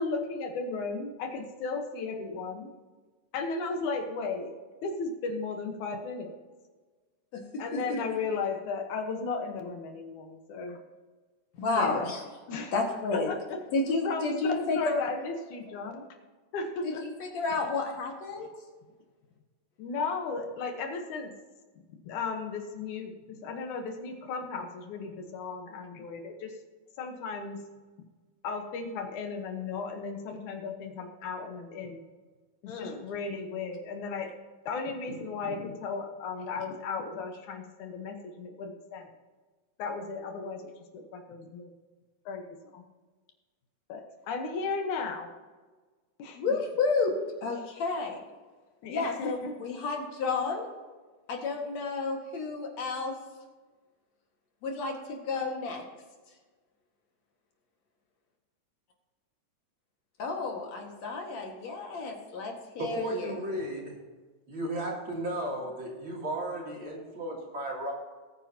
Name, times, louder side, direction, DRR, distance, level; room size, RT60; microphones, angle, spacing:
voice 1, 0.0-2.7 3.3-4.5 4.8-6.3 7.6-10.8 11.7-12.1 12.5-12.7 13.1-13.6 14.0-16.1 16.5-17.0 19.8-21.3 22.0-26.6 27.0-27.6 28.4-32.1 32.6-34.3 34.7-39.1 39.8-41.7 42.3-42.4 42.7-42.8 43.9-45.3 46.2-46.5 48.8-49.6, left 4 dB, 80° left, 4 dB, 2.7 m, -35 dB
voice 2, 7.3-8.0 11.6-12.2 12.7-13.3 13.7-15.0 16.8-18.5 32.7-33.0 46.3-48.2 48.9-50.7 51.3-53.2 54.6-55.8 60.2-63.3, left 3 dB, 65° left, 1 dB, 2.9 m, -31 dB
voice 3, 62.8-63.9 64.5-67.9, right 1 dB, 40° right, -3 dB, 3.5 m, -34 dB
21.0 x 9.3 x 2.9 m, 1.4 s
omnidirectional pair, 3.4 m